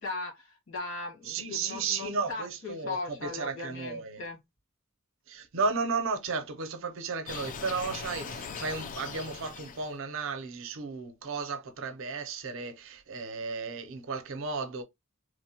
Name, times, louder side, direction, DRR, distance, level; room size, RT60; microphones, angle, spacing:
voice 1, 0.0-4.4, left 3 dB, 65° left, 1.4 m, -38 dB
voice 2, 1.3-4.2 5.3-14.8, right 4 dB, 65° right, 0.5 m, -34 dB
sound 1, 7.3-9.9, left 5 dB, 40° left, 0.3 m, -40 dB
3.0 x 2.1 x 2.7 m
head